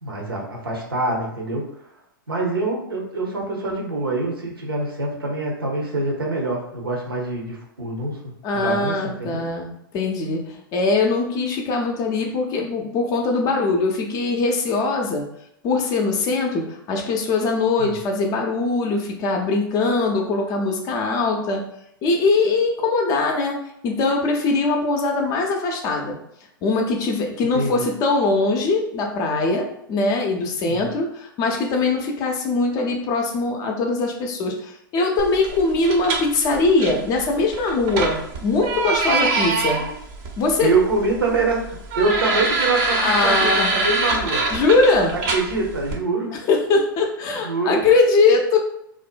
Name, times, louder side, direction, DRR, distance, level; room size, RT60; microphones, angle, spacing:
voice 1, 0.0-1.7 2.3-8.2 8.5-9.4 17.8-17.9 27.5-27.9 30.6-30.9 40.6-41.6 42.0-44.4 45.1-46.3 47.4-47.8, right 3 dB, 85° right, -1 dB, 0.7 m, -25 dB
voice 2, 8.4-15.3 15.6-21.6 22.0-26.2 26.6-39.8 40.4-40.7 43.0-43.7 44.5-45.1 46.5-48.6, left 3 dB, 30° left, 2 dB, 0.5 m, -21 dB
sound 1, 35.2-45.9, right 3 dB, 40° right, 0.5 m, -25 dB
2.5 x 2.1 x 2.4 m, 0.75 s
figure-of-eight pair, 105°, 12 cm